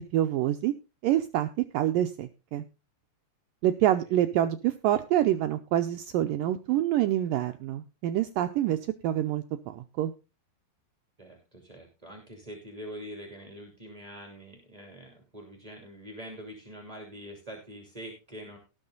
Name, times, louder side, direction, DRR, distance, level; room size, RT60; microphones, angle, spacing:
voice 1, 0.1-0.7 1.0-1.5 1.7-2.6 3.6-8.8 9.0-9.4 9.7-10.1, right 12 dB, 90° right, 8 dB, 1.9 m, -26 dB
voice 2, 11.2-18.6, equal, 10° right, 2 dB, 1.9 m, -44 dB
18.5 x 6.5 x 3.9 m, 0.29 s
omnidirectional pair, 4.9 m